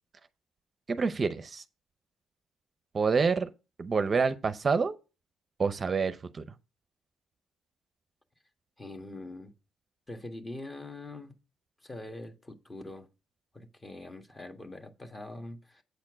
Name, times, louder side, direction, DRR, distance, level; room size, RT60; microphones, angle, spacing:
voice 1, 0.9-1.6 2.9-3.5 3.8-4.9 5.6-6.5, right 5 dB, 35° right, 0.6 m, -27 dB
voice 2, 8.8-9.5 10.1-11.3 11.8-13.1 13.5-15.8, left 2 dB, 20° left, 1.5 m, -43 dB
8.1 x 4.4 x 6.1 m
cardioid pair, 90°, 0 cm